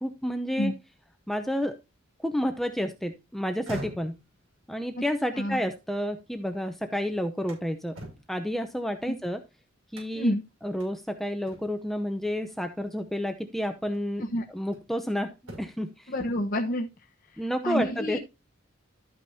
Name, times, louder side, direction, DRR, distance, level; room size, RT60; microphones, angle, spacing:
voice 1, 0.0-0.7 1.3-1.7 2.2-4.2 4.7-8.0 8.3-9.4 9.9-10.3 10.6-14.2 14.5-16.1 17.4-18.2, equal, ahead, 7 dB, 0.7 m, -30 dB
sound 1, 3.5-6.6 7.0-9.4 9.9-10.4 10.8-10.9 11.4-12.0 13.2-13.3 13.9-15.0 15.4-16.0, right 1 dB, 75° right, 6.2 m, -45 dB
voice 2, 16.1-18.2, left 1 dB, 45° left, 1 dB, 1.1 m, -29 dB
12.5 x 8.8 x 2.7 m, 0.27 s
head